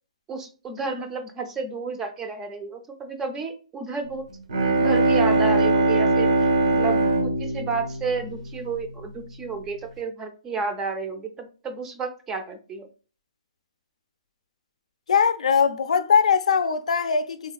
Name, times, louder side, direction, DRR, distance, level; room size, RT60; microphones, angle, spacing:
voice 1, 0.3-4.2 4.8-6.3 6.7-12.9, right 4 dB, 10° right, 0.4 m, -31 dB
Bowed string instrument, 4.3-9.0, right 2 dB, 70° right, 0.7 m, -21 dB
voice 2, 15.1-17.5, left 6 dB, 85° left, 0.4 m, -21 dB
3.6 x 2.3 x 2.3 m
hypercardioid pair, 170°, 3 cm